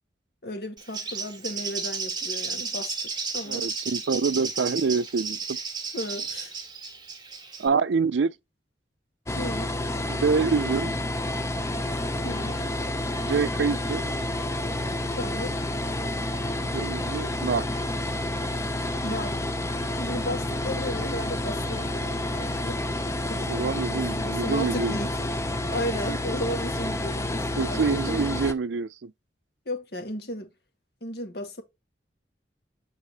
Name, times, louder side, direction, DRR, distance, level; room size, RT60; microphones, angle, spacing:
voice 1, 0.4-2.9 3.3-3.7 5.9-6.5 9.4-9.8 12.2-12.6 15.2-15.6 19.0-19.4 20.0-22.8 23.3-25.2 25.7-28.3 29.7-30.5 31.0-31.6, left 1 dB, 60° left, 1.8 m, -34 dB
Bird, 0.8-7.7, right 5 dB, 25° right, 1.4 m, -33 dB
voice 2, 3.5-5.6 7.6-8.3 10.1-10.9 13.2-14.0 16.6-17.7 23.5-24.9 27.6-29.1, right 5 dB, 85° right, 0.5 m, -26 dB
sound 1, 9.3-28.5, left 1 dB, 15° left, 0.5 m, -29 dB
8.2 x 4.1 x 2.9 m
head